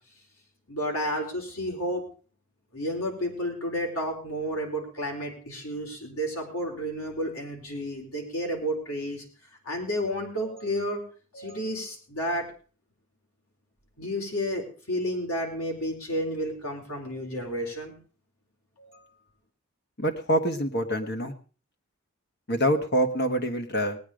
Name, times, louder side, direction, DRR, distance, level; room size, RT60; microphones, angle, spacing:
voice 1, 0.7-2.0 2.7-9.2 9.6-11.0 11.3-12.5 14.0-18.0 18.8-19.0, equal, 80° left, 1 dB, 4.5 m, -31 dB
voice 2, 20.0-21.3 22.5-24.0, equal, 50° left, 7 dB, 1.5 m, -25 dB
19.5 x 9.4 x 5.1 m, 0.39 s
head